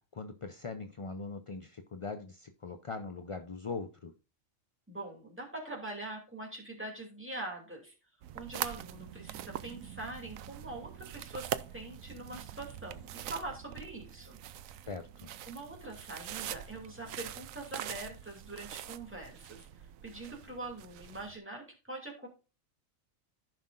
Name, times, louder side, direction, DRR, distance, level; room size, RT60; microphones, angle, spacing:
voice 1, 0.0-4.1 14.9-15.3, left 4 dB, 45° left, 7 dB, 0.4 m, -41 dB
voice 2, 4.9-7.9 8.3-14.4 15.5-22.3, right 2 dB, 10° right, -1 dB, 2.7 m, -43 dB
sound 1, 8.2-21.4, right 11 dB, 85° right, 1.0 m, -43 dB
15.0 x 5.7 x 2.5 m, 0.32 s
omnidirectional pair, 1.4 m